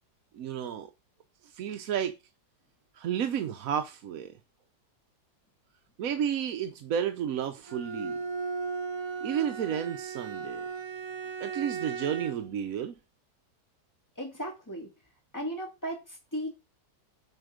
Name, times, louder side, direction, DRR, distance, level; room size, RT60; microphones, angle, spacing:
voice 1, 0.3-0.9 1.4-2.2 2.9-4.3 6.0-8.2 9.2-10.6 11.4-13.0, right 9 dB, 60° right, 1.0 m, -32 dB
Bowed string instrument, 7.7-12.5, right 5 dB, 45° right, 0.3 m, -36 dB
voice 2, 14.2-14.9 15.3-16.5, equal, 10° left, 2.3 m, -36 dB
8.0 x 4.5 x 5.0 m
omnidirectional pair, 1.8 m